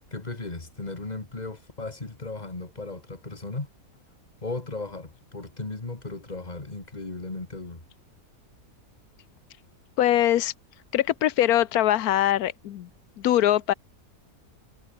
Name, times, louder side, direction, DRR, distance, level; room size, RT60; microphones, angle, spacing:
voice 1, 0.1-3.7 4.4-7.8, left 3 dB, 25° left, 2.4 m, -36 dB
voice 2, 10.0-10.5 10.9-12.9 13.2-13.7, left 12 dB, 75° left, 1.2 m, -22 dB
omnidirectional pair, 1.7 m